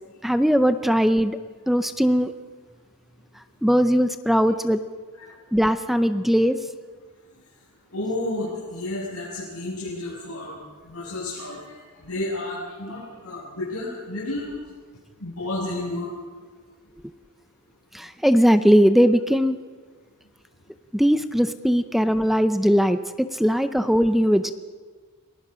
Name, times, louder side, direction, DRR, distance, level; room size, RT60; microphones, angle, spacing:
voice 1, 0.2-1.4 1.7-2.3 3.6-4.8 5.5-6.6 17.0-17.1 17.9-19.6 20.9-24.6, equal, ahead, 10 dB, 0.5 m, -19 dB
voice 2, 7.9-10.6 10.8-14.6 15.2-16.1, left 2 dB, 75° left, -9 dB, 7.0 m, -31 dB
29.5 x 19.5 x 5.1 m, 1.5 s
head